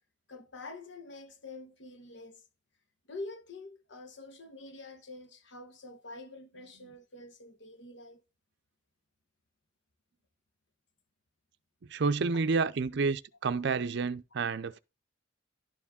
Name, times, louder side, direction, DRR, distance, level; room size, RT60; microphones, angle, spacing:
voice 1, 0.3-2.4 3.1-8.2, left 2 dB, 65° left, 1.1 m, -46 dB
voice 2, 11.9-14.8, right 4 dB, 60° right, 0.5 m, -29 dB
11.5 x 4.8 x 3.5 m
head